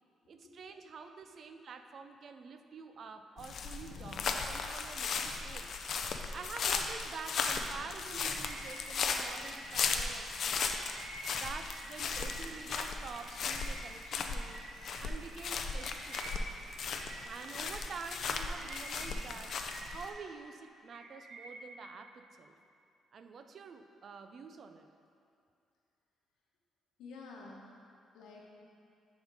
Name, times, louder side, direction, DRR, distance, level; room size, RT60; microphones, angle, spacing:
voice 1, 0.3-5.7 6.3-10.7 11.3-14.6 15.0-16.4 17.2-22.5 23.1-24.9, right 5 dB, 50° right, 8 dB, 0.4 m, -48 dB
sound 1, 3.4-20.1, left 5 dB, 55° left, 0.5 m, -36 dB
voice 2, 5.3-5.7 27.0-27.8 28.1-28.5, left 3 dB, 90° left, -2 dB, 1.2 m, -51 dB
Bird vocalization bird call bird song, 8.2-12.7 13.1-17.8 18.2-20.3 20.7-21.7, right 2 dB, 80° right, 0.9 m, -50 dB
10.5 x 3.5 x 4.8 m, 2.5 s
cardioid pair, 125°, 0 cm